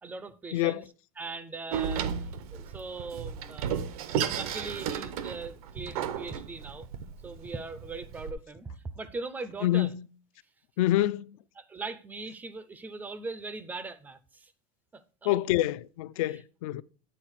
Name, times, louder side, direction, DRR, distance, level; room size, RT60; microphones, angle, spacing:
voice 1, 0.0-0.9 1.2-2.1 2.5-6.9 7.2-9.9 11.6-14.5 14.9-15.4 16.2-16.4, right 3 dB, 10° right, 0.4 m, -40 dB
Door, 1.7-8.3, right 8 dB, 85° right, 0.9 m, -34 dB
voice 2, 9.6-10.0 10.8-11.4 15.2-16.8, left 15 dB, 70° left, 0.4 m, -26 dB
9.0 x 4.0 x 4.6 m
supercardioid pair, 170°, 18 cm